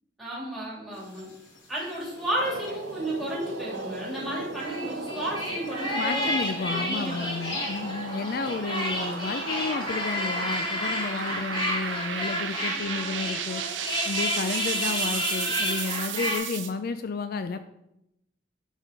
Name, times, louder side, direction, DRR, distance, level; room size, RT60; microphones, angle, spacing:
voice 1, 0.2-1.3 1.7-7.3, right 1 dB, ahead, -4 dB, 3.0 m, -33 dB
sound 1, 0.9-12.8, left 2 dB, 90° left, 2.7 m, -47 dB
sound 2, 2.1-16.7, right 6 dB, 80° right, 0.9 m, -35 dB
sound 3, 4.5-16.4, left 1 dB, 25° left, 2.2 m, -31 dB
voice 2, 6.0-13.6 14.1-17.6, left 4 dB, 55° left, 10 dB, 0.4 m, -32 dB
12.0 x 4.1 x 5.2 m, 0.85 s
head